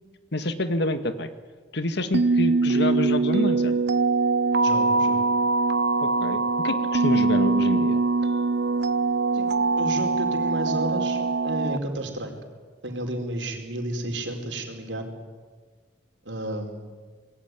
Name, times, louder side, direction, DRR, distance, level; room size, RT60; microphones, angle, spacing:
voice 1, 0.3-1.3 1.7-3.7 6.0-8.0, left 1 dB, 65° left, 9 dB, 2.0 m, -27 dB
sound 1, 2.1-11.8, right 3 dB, 65° right, 0.8 m, -22 dB
voice 2, 4.6-5.2 9.3-9.5 9.8-12.3 12.8-15.1 16.2-16.9, right 1 dB, 80° right, 4 dB, 4.6 m, -32 dB
26.0 x 20.5 x 9.8 m, 1.5 s
head